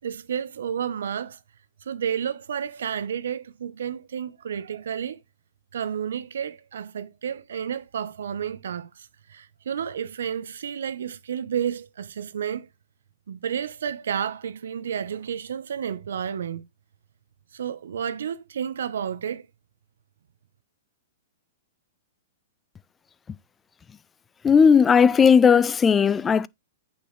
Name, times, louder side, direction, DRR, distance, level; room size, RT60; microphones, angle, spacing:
voice 1, 0.0-1.4 1.8-5.2 5.7-12.7 13.3-16.6 17.5-19.5, right 8 dB, 80° right, 0.9 m, -31 dB
voice 2, 24.4-26.5, left 6 dB, 15° left, 0.4 m, -16 dB
8.6 x 6.1 x 3.2 m
hypercardioid pair, 130°, 0 cm